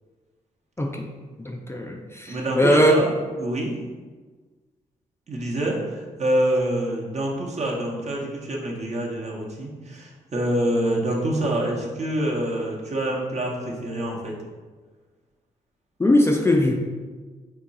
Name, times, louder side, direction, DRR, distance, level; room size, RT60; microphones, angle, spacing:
voice 1, 0.8-1.1 1.4-3.0 16.0-16.7, left 1 dB, 15° left, 1 dB, 0.4 m, -20 dB
voice 2, 2.3-3.8 5.3-14.3, right 1 dB, 45° right, -2 dB, 1.0 m, -26 dB
3.6 x 2.3 x 4.1 m, 1.4 s
hypercardioid pair, 40°, 16 cm